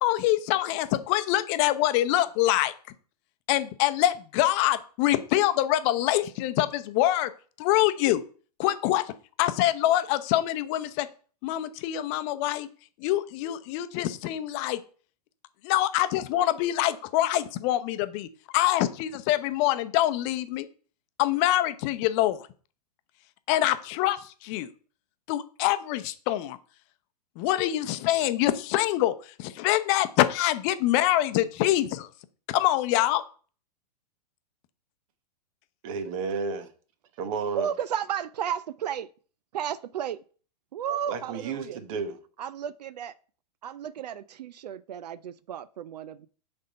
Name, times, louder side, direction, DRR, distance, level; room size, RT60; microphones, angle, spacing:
voice 1, 0.0-2.7 3.5-7.3 7.6-8.2 8.6-11.1 11.4-12.7 13.0-14.8 15.6-18.3 18.5-20.7 21.2-22.5 23.5-24.7 25.3-26.6 27.4-32.1 32.5-33.2, left 14 dB, 45° left, 0.7 m, -25 dB
voice 2, 35.8-36.6 37.2-37.7 41.1-42.2, right 5 dB, 55° right, 1.2 m, -32 dB
voice 3, 37.5-39.1 39.5-40.2 40.7-41.8 42.4-43.1 43.6-46.3, right 9 dB, 75° right, 0.5 m, -33 dB
6.4 x 3.6 x 5.4 m
hypercardioid pair, 110°, 21 cm